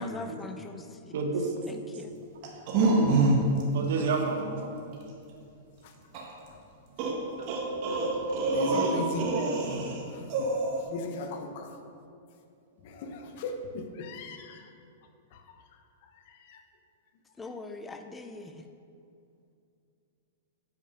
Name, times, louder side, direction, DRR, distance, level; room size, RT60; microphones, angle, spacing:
voice 1, 0.0-1.2 1.7-2.1 8.7-9.1 17.4-18.6, left 3 dB, 15° left, 7 dB, 0.5 m, -42 dB
voice 2, 1.1-1.5 3.7-4.7 7.4-7.6 8.5-9.7, right 4 dB, 70° right, 3 dB, 1.3 m, -32 dB
sound 1, 2.4-3.6 4.0-4.2 6.1-6.2 7.0-10.0 10.3-10.8, right 2 dB, 50° right, 1.5 m, -26 dB
voice 3, 8.5-9.3 10.4-10.5 10.9-11.7 12.8-14.7 15.3-15.4 16.5-16.6, left 3 dB, 55° left, 6 dB, 1.0 m, -37 dB
8.4 x 5.4 x 5.5 m, 2.5 s
hypercardioid pair, 115°, 0 cm